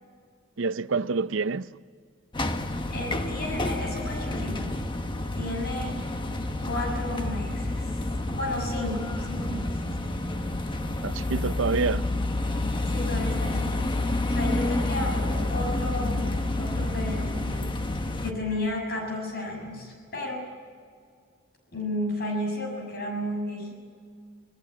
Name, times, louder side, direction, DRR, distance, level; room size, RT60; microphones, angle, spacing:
voice 1, 0.6-1.8 11.0-12.1, right 4 dB, 70° right, 0.6 m, -27 dB
sound 1, 2.3-18.3, left 2 dB, 25° left, 1.2 m, -29 dB
voice 2, 2.9-4.8 5.4-6.0 6.6-8.0 8.3-10.2 12.9-16.3 16.6-17.8 18.2-20.5 21.7-23.7, left 1 dB, 55° left, 6.6 m, -33 dB
26.5 x 19.0 x 8.7 m
head